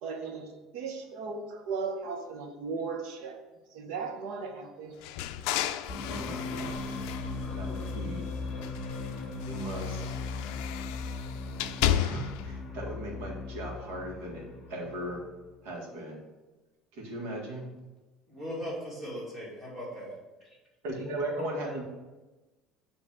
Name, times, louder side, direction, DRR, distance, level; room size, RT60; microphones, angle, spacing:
voice 1, 0.0-3.4 3.7-5.0, right 5 dB, 70° right, 5 dB, 1.0 m, -36 dB
sound 1, 5.0-8.2 8.6-12.5, left 11 dB, 75° left, 0.3 m, -34 dB
sound 2, 5.9-15.5, left 3 dB, 25° left, 1.1 m, -38 dB
voice 2, 6.1-6.8 7.5-8.3 9.4-10.2 12.0-14.4 14.7-15.2 15.6-16.2 16.9-17.7 20.8-21.8, right 1 dB, 90° right, -1 dB, 1.8 m, -37 dB
voice 3, 18.3-20.1, equal, 10° right, -7 dB, 2.4 m, -38 dB
7.6 x 3.2 x 6.2 m, 1.2 s
cardioid pair, 170°, 0 cm